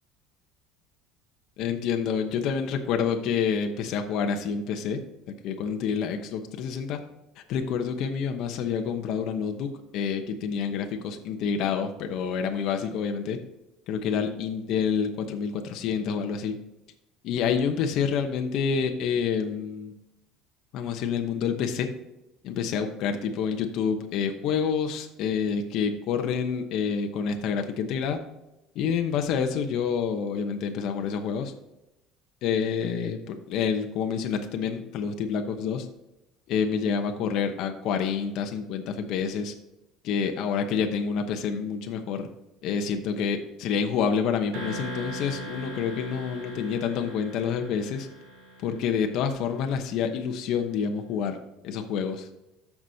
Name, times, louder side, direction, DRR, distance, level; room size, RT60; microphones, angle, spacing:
voice 1, 1.6-5.0 5.4-7.0 7.5-13.4 13.9-16.6 17.2-19.9 20.7-21.9 22.4-28.2 28.7-31.5 32.4-35.9 36.5-39.5 40.0-42.3 42.6-48.1 48.6-51.4 51.6-52.3, left 6 dB, 55° left, 5 dB, 0.9 m, -28 dB
sound 1, 44.5-49.4, right 1 dB, 70° right, 3.6 m, -40 dB
14.0 x 6.0 x 2.8 m, 0.92 s
cardioid pair, 160°, 0 cm